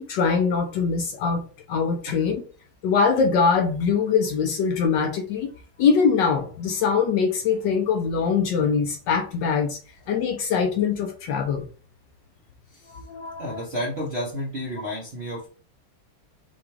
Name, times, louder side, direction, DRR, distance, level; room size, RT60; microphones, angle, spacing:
voice 1, 0.0-1.4 1.7-2.4 2.8-5.5 5.8-9.8 10.1-11.6 12.9-13.6, left 5 dB, 75° left, 4 dB, 1.1 m, -23 dB
voice 2, 13.4-15.5, equal, 55° right, -3 dB, 0.7 m, -31 dB
5.9 x 2.3 x 3.1 m, 0.39 s
omnidirectional pair, 2.3 m